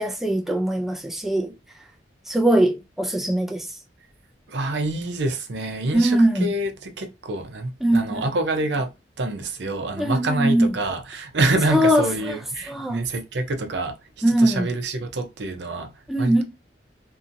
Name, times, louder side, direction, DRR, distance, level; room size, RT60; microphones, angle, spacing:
voice 1, 0.0-1.5 2.3-3.7 5.9-6.5 7.8-8.3 10.0-10.7 11.7-12.3 12.7-13.0 14.2-14.7 16.1-16.4, right 1 dB, ahead, 0.4 m, -21 dB
voice 2, 4.5-8.9 9.2-13.9 14.4-15.9 16.2-16.4, right 2 dB, 75° right, 0.6 m, -26 dB
2.7 x 2.6 x 2.5 m
head